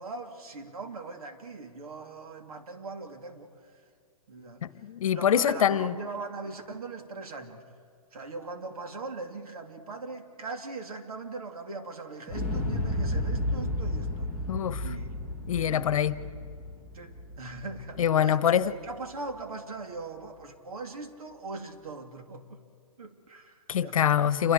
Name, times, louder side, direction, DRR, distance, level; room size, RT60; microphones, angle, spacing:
voice 1, 0.0-3.5 4.3-4.6 5.1-7.6 8.1-14.3 14.8-16.2 16.9-22.6 23.0-24.2, right 3 dB, 80° right, 3.1 m, -40 dB
voice 2, 4.6-5.9 14.5-14.8 15.5-16.2 18.0-18.7 23.7-24.5, left 9 dB, 65° left, 1.1 m, -24 dB
Explosion, 12.3-18.3 18.6-18.7, left 1 dB, 10° right, 2.3 m, -32 dB
28.5 x 23.5 x 5.0 m
hypercardioid pair, 165°, 19 cm